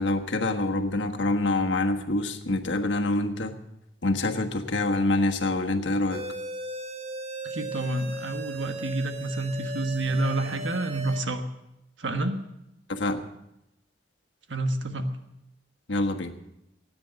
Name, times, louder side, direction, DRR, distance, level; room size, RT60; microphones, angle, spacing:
voice 1, 0.0-3.5 4.0-6.2 12.9-13.3 15.9-16.3, left 2 dB, 80° left, 4 dB, 1.4 m, -26 dB
sound 1, 6.1-11.2, right 1 dB, 35° right, 0.9 m, -37 dB
voice 2, 7.4-11.4 12.0-12.4 14.5-15.1, right 2 dB, 80° right, 7 dB, 1.4 m, -29 dB
17.5 x 9.6 x 6.5 m, 0.86 s
head